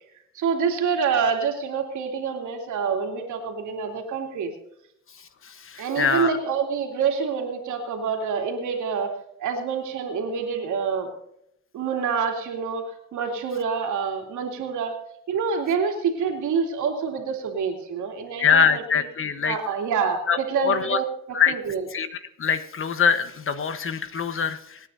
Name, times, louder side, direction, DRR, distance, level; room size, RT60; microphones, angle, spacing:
voice 1, 0.3-4.5 5.8-9.1 9.4-11.1 11.7-14.9 15.3-19.1 19.4-21.9, right 6 dB, 80° right, 2 dB, 2.9 m, -27 dB
voice 2, 5.6-6.4 18.4-19.6 20.3-21.0 21.3-21.5 21.9-22.1 22.4-24.8, left 6 dB, 45° left, 11 dB, 1.2 m, -23 dB
25.0 x 9.7 x 2.7 m, 0.75 s
cardioid pair, 90°, 30 cm